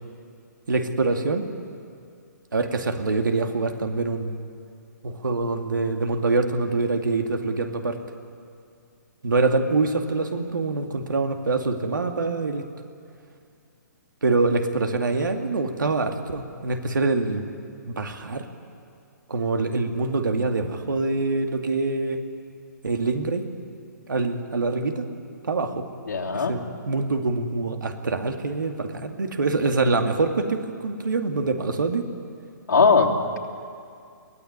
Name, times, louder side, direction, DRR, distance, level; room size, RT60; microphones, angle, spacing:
voice 1, 0.7-1.5 2.5-4.4 5.0-8.0 9.2-12.6 14.2-17.5 17.9-18.5 19.3-22.2 22.8-23.5 24.1-25.1 25.4-25.9 26.3-32.1, right 3 dB, 85° right, 5 dB, 2.3 m, -25 dB
voice 2, 26.1-26.5 32.7-33.4, left 4 dB, 85° left, -2 dB, 3.4 m, -20 dB
23.5 x 17.0 x 9.7 m, 2.3 s
hypercardioid pair, 140°, 10 cm